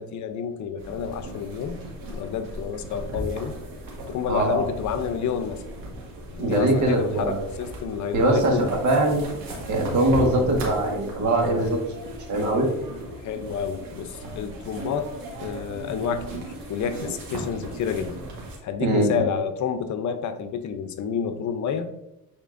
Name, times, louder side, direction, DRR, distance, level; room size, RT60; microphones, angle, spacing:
voice 1, 0.0-1.8 2.1-3.6 4.1-5.6 6.3-8.7 13.2-15.1 15.4-18.2 18.6-21.9, left 7 dB, 60° left, 9 dB, 0.7 m, -29 dB
sound 1, 0.8-18.6, right 1 dB, 85° right, 1.9 m, -37 dB
voice 2, 4.3-4.6 6.4-7.5 8.1-8.6 8.8-9.2 9.7-11.8 12.3-12.7 18.8-19.2, right 1 dB, 60° right, 1 dB, 1.6 m, -22 dB
8.9 x 4.3 x 2.6 m, 0.89 s
cardioid pair, 105°, 34 cm